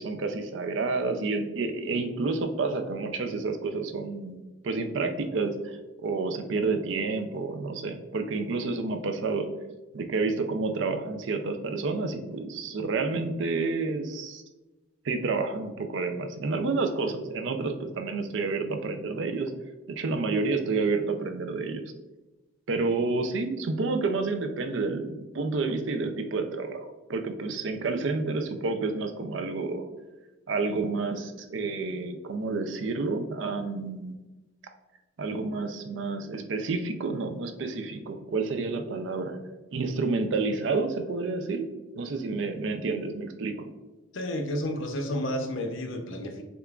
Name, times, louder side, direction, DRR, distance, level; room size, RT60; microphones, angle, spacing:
voice 1, 0.0-4.4 4.6-9.5 9.9-14.4 15.0-19.5 19.9-21.8 22.7-29.8 30.5-34.2 35.2-39.4 39.7-43.7, right 3 dB, 65° right, 7 dB, 0.4 m, -29 dB
voice 2, 44.1-46.4, left 1 dB, 70° left, 5 dB, 0.6 m, -31 dB
6.6 x 2.4 x 2.3 m, 1.1 s
head